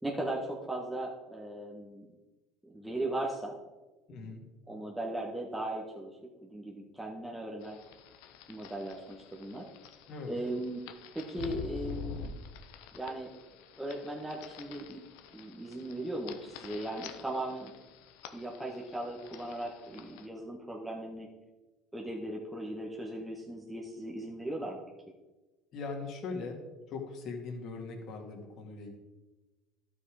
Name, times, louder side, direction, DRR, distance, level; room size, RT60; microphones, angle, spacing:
voice 1, 0.0-2.0 2.6-3.6 4.2-4.3 4.7-6.1 6.4-7.8 8.5-9.7 10.2-10.8 11.1-12.3 12.9-13.3 13.8-15.0 15.3-17.7 18.3-21.3 21.9-24.8, right 1 dB, 5° right, -3 dB, 1.6 m, -38 dB
voice 2, 4.1-4.4 10.1-10.3 25.7-26.6 26.9-29.0, left 4 dB, 55° left, 1 dB, 2.4 m, -40 dB
sound 1, 7.6-20.3, left 5 dB, 80° left, 0.9 m, -48 dB
12.0 x 5.7 x 5.1 m, 1.1 s
supercardioid pair, 95°, 0 cm